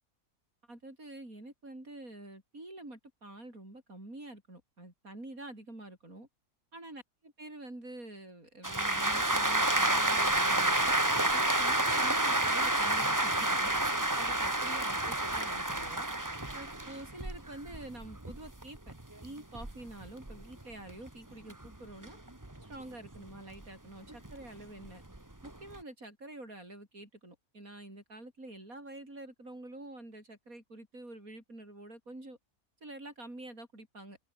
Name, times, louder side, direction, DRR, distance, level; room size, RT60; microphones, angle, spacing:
voice 1, 0.7-6.3 6.7-10.9 11.3-16.1 16.5-18.9 19.2-22.2 22.6-25.0 25.4-32.4 32.8-34.2, right 1 dB, 70° right, 8.1 m, -47 dB
sound 1, 8.6-21.1 21.5-23.6 24.1-25.8, right 1 dB, 15° right, 1.8 m, -30 dB
open air
omnidirectional pair, 1.5 m